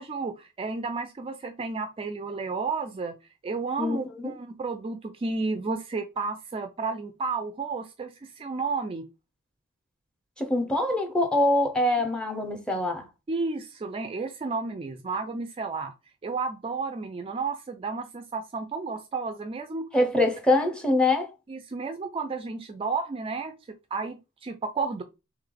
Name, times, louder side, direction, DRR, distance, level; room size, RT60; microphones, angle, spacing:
voice 1, 0.0-3.1 3.4-9.0 13.3-15.9 16.2-19.9 21.5-23.5 23.9-25.0, right 4 dB, 25° right, 0.3 m, -32 dB
voice 2, 3.8-4.3 10.4-13.1 19.9-21.3, left 2 dB, 5° left, 0.7 m, -24 dB
3.3 x 3.2 x 3.7 m
head